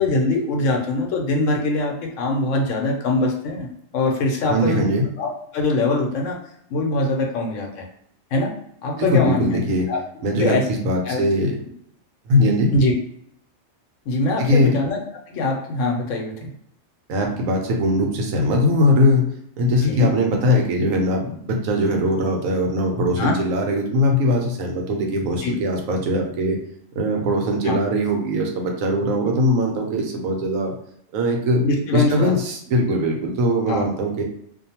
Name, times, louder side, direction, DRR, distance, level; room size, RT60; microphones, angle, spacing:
voice 1, 0.0-4.9 5.2-6.4 6.7-7.9 8.3-8.5 8.8-9.6 9.9-10.0 10.4-10.7 11.0-11.2 12.7-12.9 14.1-15.0 15.3-16.5 19.8-20.1 23.2-23.3 25.4-25.5 27.6-27.7 31.6-32.3 33.7-33.9, left 2 dB, 75° left, 1 dB, 1.0 m, -22 dB
voice 2, 4.5-5.1 9.0-9.9 10.2-11.5 12.3-12.7 14.4-14.7 17.1-19.3 19.6-26.6 27.0-30.7 31.1-31.6 31.9-34.2, left 1 dB, 90° right, 2 dB, 1.0 m, -20 dB
2.5 x 2.1 x 2.8 m, 0.71 s
omnidirectional pair, 1.3 m